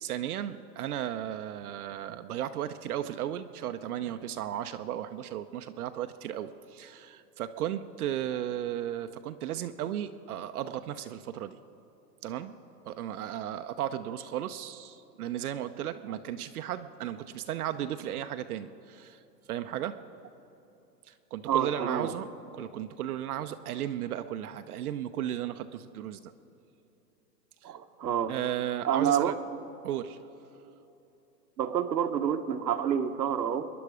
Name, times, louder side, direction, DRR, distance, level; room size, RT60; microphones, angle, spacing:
voice 1, 0.0-11.6 12.2-12.5 12.9-19.2 19.5-20.0 21.1-22.3 22.5-26.3 27.6-27.7 28.3-29.4 29.8-30.2, right 11 dB, 60° right, 9 dB, 0.7 m, -35 dB
voice 2, 21.5-22.1 27.6-28.3 28.9-29.3 31.6-33.7, right 9 dB, 90° right, 7 dB, 1.2 m, -28 dB
25.0 x 11.0 x 4.9 m, 2.9 s
hypercardioid pair, 145°, 50 cm